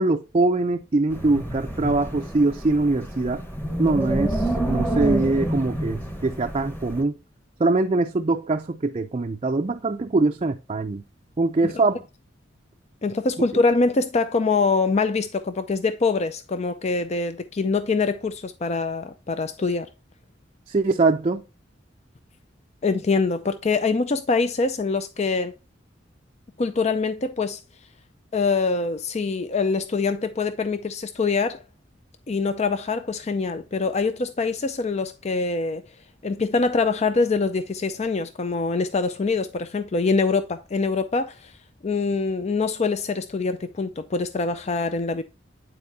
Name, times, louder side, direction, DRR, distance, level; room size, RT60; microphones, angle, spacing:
voice 1, 0.0-3.4 3.8-7.2 7.6-11.0 11.4-12.0 20.7-21.4, right 3 dB, 30° right, 0.5 m, -23 dB
Wind, 1.1-7.0, right 1 dB, 10° left, 1.2 m, -28 dB
voice 2, 13.0-19.9 22.8-25.5 26.6-27.6 28.3-31.6 32.3-35.8 36.2-41.5 41.8-45.2, left 4 dB, 35° left, 0.5 m, -24 dB
9.4 x 4.4 x 2.7 m
head